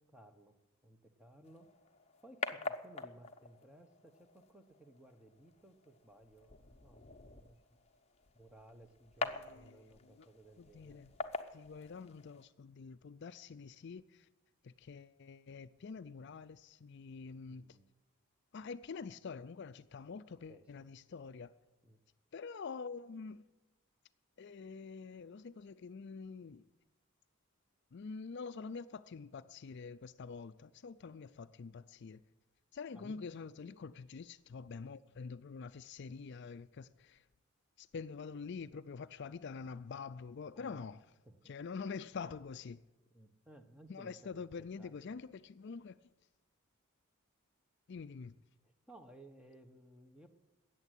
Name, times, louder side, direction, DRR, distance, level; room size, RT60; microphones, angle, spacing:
voice 1, 0.1-1.7 2.2-7.0 7.3-7.8 8.3-11.0 17.5-17.9 20.4-20.9 21.8-22.0 32.9-33.2 40.5-40.9 41.2-41.5 43.1-44.9 48.6-50.3, right 1 dB, 5° right, 1.1 m, -59 dB
sound 1, 1.4-12.4, left 3 dB, 30° left, 0.8 m, -46 dB
voice 2, 9.2-10.3 10.6-11.1 11.5-14.3 14.6-17.8 18.5-21.5 22.3-23.4 24.4-26.6 27.9-32.2 32.7-37.2 37.8-41.0 41.5-42.8 43.9-46.0 47.9-48.3, left 5 dB, 50° left, 0.4 m, -46 dB
14.0 x 9.1 x 9.9 m
head